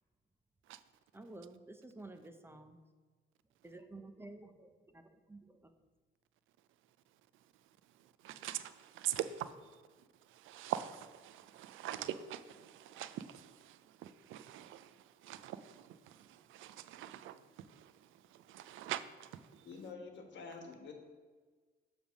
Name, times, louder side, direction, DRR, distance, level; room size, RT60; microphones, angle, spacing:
voice 1, 1.1-2.8 3.6-5.0 5.3-5.7, right 2 dB, 10° right, 0.6 m, -52 dB
voice 2, 8.0-9.8 10.3-19.7, right 12 dB, 85° right, 0.4 m, -44 dB
voice 3, 19.6-20.9, left 4 dB, 65° left, 1.3 m, -48 dB
7.2 x 3.5 x 6.2 m
cardioid pair, 90°, 20 cm